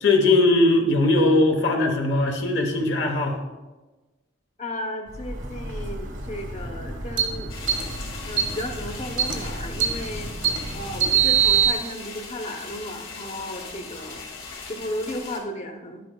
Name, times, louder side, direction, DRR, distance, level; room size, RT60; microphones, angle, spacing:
voice 1, 0.0-3.4, left 2 dB, 65° left, 2 dB, 1.0 m, -20 dB
voice 2, 4.6-7.5 8.2-10.3 10.7-14.2 14.7-16.0, left 1 dB, 35° left, 5 dB, 0.9 m, -34 dB
sound 1, 5.1-11.7, right 7 dB, 75° right, 1.4 m, -25 dB
sound 2, 7.5-15.4, left 4 dB, 85° left, 2.1 m, -39 dB
11.5 x 9.3 x 2.2 m, 1.2 s
head